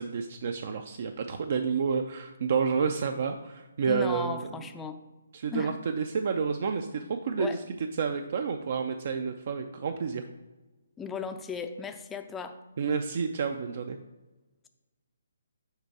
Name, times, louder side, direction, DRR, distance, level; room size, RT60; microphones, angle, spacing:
voice 1, 0.0-4.5 5.3-7.5 8.0-10.2 12.8-14.0, right 6 dB, 50° right, 7 dB, 0.4 m, -30 dB
voice 2, 3.9-5.0 5.5-5.8 7.4-7.6 11.0-12.6, left 6 dB, 10° left, 8 dB, 0.4 m, -36 dB
6.6 x 4.5 x 4.7 m, 1.1 s
hypercardioid pair, 155°, 0 cm